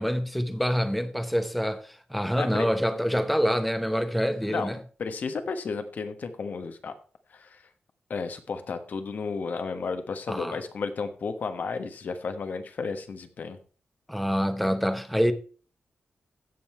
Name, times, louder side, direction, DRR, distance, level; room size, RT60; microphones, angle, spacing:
voice 1, 0.0-4.8 10.3-10.6 14.1-15.3, equal, ahead, 0.9 m, -26 dB
voice 2, 4.4-4.7 5.0-6.9 7.3-7.6 8.1-13.6, left 4 dB, 55° left, 1.3 m, -33 dB
16.0 x 5.5 x 4.3 m
wide cardioid pair, 175°, 4 cm